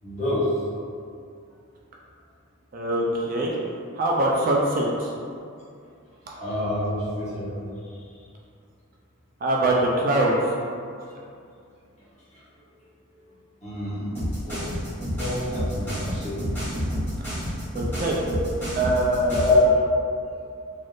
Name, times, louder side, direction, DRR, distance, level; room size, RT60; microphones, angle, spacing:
voice 1, 0.0-0.5 6.3-7.6 7.8-8.1 12.3-12.4 13.6-14.1 14.4-14.6 15.2-16.4 19.3-19.7, left 1 dB, 30° left, -10 dB, 1.0 m, -26 dB
voice 2, 2.7-3.6 3.9-5.1 9.4-10.5 17.7-18.2 18.8-19.6, right 1 dB, 40° right, -3 dB, 0.3 m, -23 dB
sound 1, 14.2-19.6, equal, 10° left, 1.1 m, -29 dB
3.4 x 2.6 x 2.4 m, 2.4 s
head